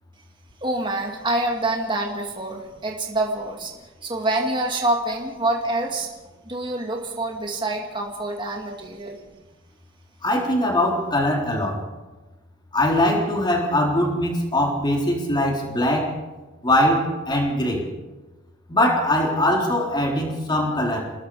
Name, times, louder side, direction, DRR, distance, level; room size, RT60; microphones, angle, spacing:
voice 1, 0.6-3.7 4.0-6.1 6.4-9.2, right 2 dB, 25° right, 1 dB, 2.4 m, -26 dB
voice 2, 10.2-11.8 12.7-16.2 16.6-17.9 18.7-21.1, left 1 dB, 20° left, 0 dB, 3.8 m, -21 dB
27.5 x 20.0 x 4.9 m, 1.2 s
head